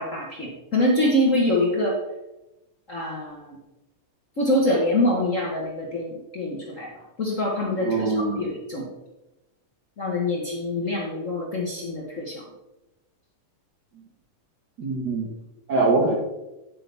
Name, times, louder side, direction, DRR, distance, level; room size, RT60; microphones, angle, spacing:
voice 1, 0.0-2.0 2.9-3.5 4.4-6.9 7.2-8.9 10.0-12.4, left 1 dB, 80° left, -3 dB, 0.7 m, -25 dB
voice 2, 7.8-8.5 14.8-15.3 15.7-16.1, right 3 dB, 75° right, -1 dB, 0.9 m, -23 dB
9.9 x 8.0 x 3.4 m, 0.99 s
omnidirectional pair, 3.5 m